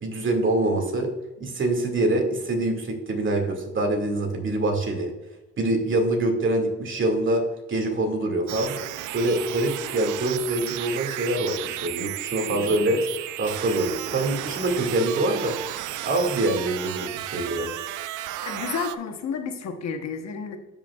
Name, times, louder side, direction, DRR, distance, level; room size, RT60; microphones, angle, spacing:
voice 1, 0.0-1.1 1.4-5.1 5.6-7.4 7.7-8.8 9.1-13.0 13.4-15.5 16.0-17.7, right 2 dB, 40° right, 2 dB, 2.1 m, -25 dB
sound 1, 8.5-19.0, right 14 dB, 85° right, 0.5 m, -33 dB
voice 2, 12.5-12.8 18.4-20.6, left 6 dB, 60° left, 6 dB, 1.1 m, -31 dB
12.5 x 5.6 x 2.4 m, 1.0 s
cardioid pair, 90°, 30 cm